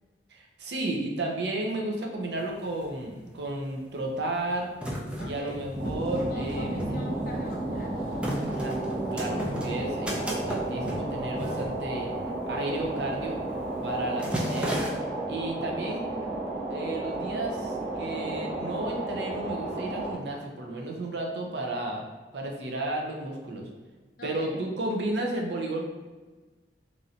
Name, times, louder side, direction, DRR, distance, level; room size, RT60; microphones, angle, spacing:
voice 1, 0.3-4.7 5.2-6.7 8.5-8.8 9.1-12.1 12.4-13.4 13.8-14.8 15.3-16.1 16.7-22.0 22.3-23.7 24.2-25.9, right 1 dB, 75° right, 1 dB, 0.6 m, -33 dB
sound 1, 2.4-2.5 2.7-3.5 4.1-12.4 12.7-13.0 13.3-13.6 13.9-14.9, right 1 dB, 5° right, 0.3 m, -34 dB
voice 2, 5.2-5.7 6.3-8.0 24.2-24.6, left 1 dB, 55° left, 0 dB, 0.5 m, -43 dB
sound 2, 5.7-20.2, right 2 dB, 55° right, 1.3 m, -33 dB
3.0 x 2.6 x 2.7 m, 1.3 s
head